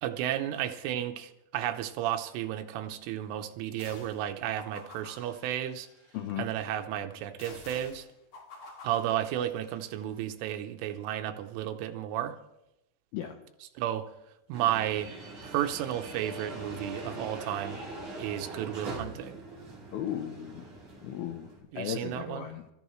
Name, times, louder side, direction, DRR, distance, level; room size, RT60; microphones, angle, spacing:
voice 1, 0.0-5.9 6.4-8.1 8.8-12.4 13.8-14.1 14.5-15.1 15.4-17.8 18.2-19.4 21.7-22.5, right 11 dB, 85° right, 7 dB, 3.4 m, -33 dB
sound 1, 3.8-4.3 4.6-6.3 7.4-10.0, left 3 dB, 45° left, 3.4 m, -49 dB
voice 2, 6.1-6.5 13.1-13.4 19.9-20.7 21.0-21.5 21.8-22.6, left 10 dB, 80° left, 4 dB, 2.2 m, -36 dB
sound 2, 14.5-21.6, right 2 dB, 40° right, 6.5 m, -42 dB
25.5 x 14.0 x 3.2 m, 0.89 s
omnidirectional pair, 5.6 m